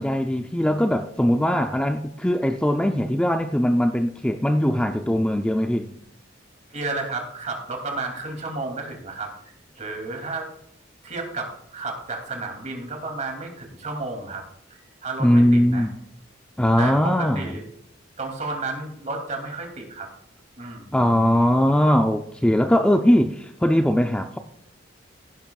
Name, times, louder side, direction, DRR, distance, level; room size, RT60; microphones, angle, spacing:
voice 1, 0.0-6.0 15.2-16.0 16.6-17.6 20.9-24.4, equal, 5° left, 0.5 m, -20 dB
voice 2, 6.7-9.3 9.8-10.5 11.0-14.4 14.7-15.9 16.8-17.6 18.2-20.1 20.6-20.9, right 3 dB, 40° right, 2.7 m, -32 dB
16.0 x 10.5 x 2.4 m
head